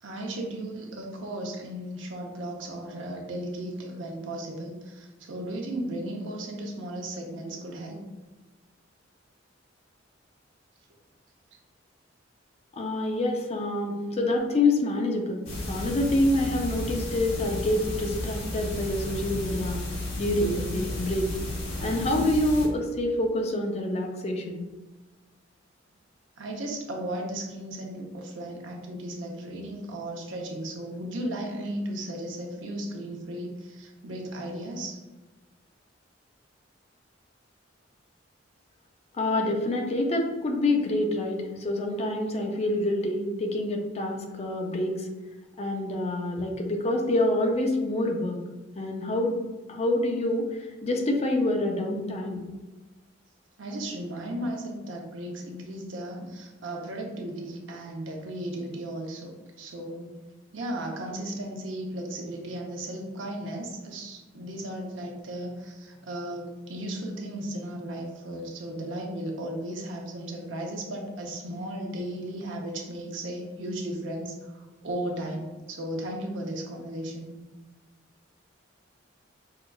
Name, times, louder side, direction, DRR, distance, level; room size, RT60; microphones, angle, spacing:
voice 1, 0.0-8.0 26.4-35.0 53.6-60.1 60.5-77.3, right 1 dB, 70° right, 1 dB, 0.7 m, -35 dB
voice 2, 12.7-19.8 20.2-21.4 21.8-24.7 39.1-45.1 45.6-48.4 48.8-49.4 49.7-52.4, left 1 dB, 35° left, 2 dB, 0.5 m, -27 dB
sound 1, 15.5-22.7, left 1 dB, 85° left, 1.1 m, -33 dB
5.5 x 2.3 x 2.3 m, 1.2 s
head